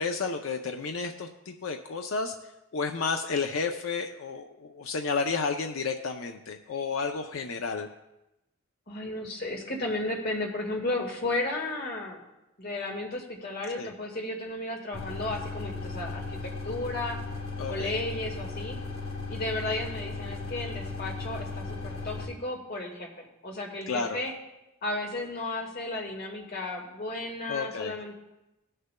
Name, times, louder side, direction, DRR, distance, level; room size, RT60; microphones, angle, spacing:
voice 1, 0.0-2.3 2.7-7.9 13.8-13.9 17.6-17.9 23.9-24.2 27.5-27.9, left 4 dB, 65° left, 5 dB, 0.5 m, -31 dB
voice 2, 8.9-12.2 12.6-16.4 16.7-17.2 17.7-18.8 19.3-24.3 24.8-28.1, left 2 dB, 45° left, 0 dB, 1.7 m, -34 dB
sound 1, 14.9-22.3, left 3 dB, 85° left, 2.3 m, -36 dB
19.5 x 6.6 x 2.2 m, 0.93 s
head